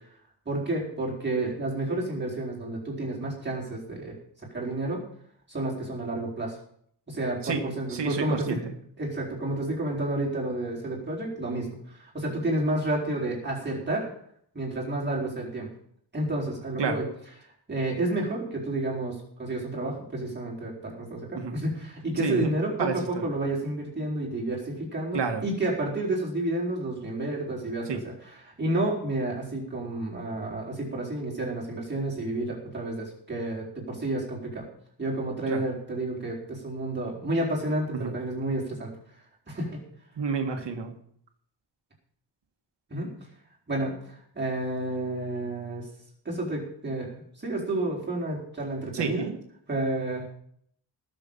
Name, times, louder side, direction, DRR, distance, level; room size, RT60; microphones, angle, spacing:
voice 1, 0.5-4.1 4.5-5.0 5.5-6.6 7.1-8.6 9.0-14.1 14.5-15.7 16.1-17.0 17.7-22.7 23.2-28.1 28.4-34.7 35.0-38.9 39.5-39.8 42.9-43.2 43.7-45.9 46.2-47.1 47.4-49.3 49.7-50.4, right 2 dB, 25° right, -4 dB, 4.4 m, -30 dB
voice 2, 7.9-8.7 16.8-17.0 21.3-21.5 22.2-22.5 22.8-23.3 25.1-25.4 27.8-28.0 35.5-35.6 37.9-38.1 40.2-40.9 48.9-49.4, right 5 dB, 70° right, 4 dB, 1.8 m, -29 dB
19.5 x 7.1 x 5.5 m, 0.66 s
wide cardioid pair, 175°, 43 cm